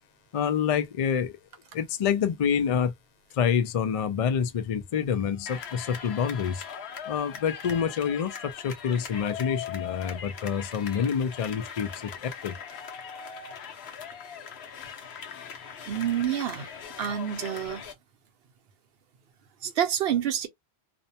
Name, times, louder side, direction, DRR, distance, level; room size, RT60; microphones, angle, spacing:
voice 1, 0.3-1.4 1.7-2.9 3.3-6.6 7.1-12.5, left 7 dB, 55° left, 0.4 m, -27 dB
sound 1, 5.5-17.9, left 7 dB, 80° left, 0.9 m, -40 dB
voice 2, 15.9-16.7 17.0-17.8 19.6-20.5, right 10 dB, 70° right, 0.9 m, -28 dB
2.6 x 2.1 x 2.7 m
omnidirectional pair, 1.1 m